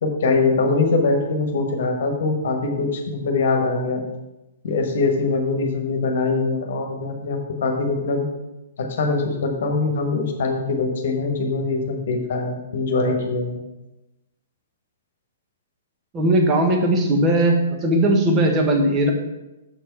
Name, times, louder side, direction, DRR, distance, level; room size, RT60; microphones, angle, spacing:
voice 1, 0.0-4.0 4.6-8.3 9.0-13.6, left 3 dB, 50° left, 3 dB, 1.3 m, -22 dB
voice 2, 16.1-17.5 17.8-19.1, right 1 dB, 20° right, 2 dB, 1.4 m, -18 dB
7.2 x 6.7 x 4.5 m, 0.99 s
figure-of-eight pair, 115°, 0 cm